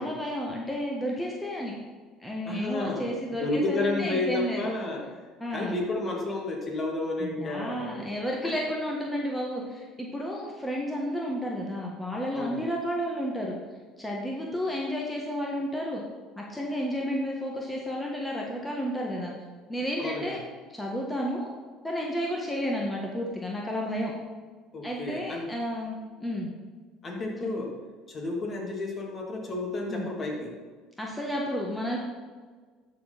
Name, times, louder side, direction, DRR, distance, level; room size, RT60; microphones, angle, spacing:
voice 1, 0.0-1.7 2.2-4.7 5.4-5.7 7.2-13.5 14.0-16.0 16.3-19.3 19.7-20.4 20.7-21.5 21.8-24.1 24.8-26.5 27.4-27.5 29.9-30.1 31.0-32.0, equal, 10° left, -2 dB, 1.7 m, -31 dB
voice 2, 2.4-5.2 5.5-8.1 8.4-8.5 12.3-12.7 20.0-20.4 24.7-25.5 27.0-27.7 28.1-30.5, left 2 dB, 35° left, 0 dB, 2.6 m, -31 dB
12.5 x 4.7 x 5.4 m, 1.5 s
hypercardioid pair, 75°, 0 cm